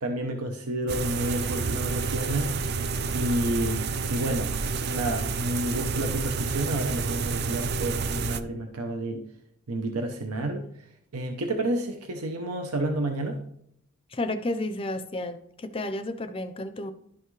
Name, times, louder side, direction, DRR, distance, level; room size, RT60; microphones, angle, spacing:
voice 1, 0.0-2.5 3.1-4.5 4.9-9.2 9.7-10.7 11.1-13.4, right 1 dB, 90° right, 4 dB, 0.8 m, -30 dB
sound 1, 0.9-8.4, right 4 dB, 45° right, 0.4 m, -29 dB
voice 2, 14.1-16.9, left 2 dB, 25° left, 9 dB, 0.5 m, -32 dB
11.5 x 5.7 x 3.2 m, 0.72 s
head